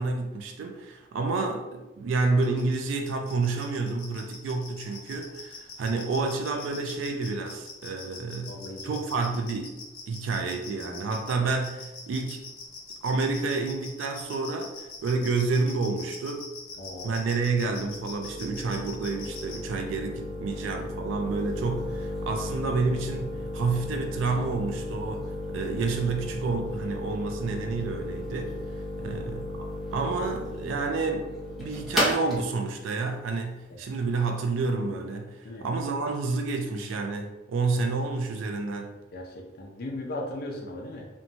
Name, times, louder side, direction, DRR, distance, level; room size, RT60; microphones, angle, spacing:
voice 1, 0.0-9.7 10.1-12.4 13.0-16.5 17.0-28.6 29.0-31.3 31.6-38.9, right 3 dB, 70° right, 4 dB, 0.3 m, -29 dB
sound 1, 2.4-19.6, left 5 dB, 75° left, 0.8 m, -42 dB
voice 2, 8.5-9.0 16.8-17.2 29.0-29.2 33.7-33.8 35.4-35.7 39.1-41.1, left 1 dB, 50° left, -1 dB, 0.4 m, -37 dB
sound 2, 16.9-34.5, left 1 dB, ahead, 0.6 m, -35 dB
2.9 x 2.2 x 2.6 m, 1.0 s
head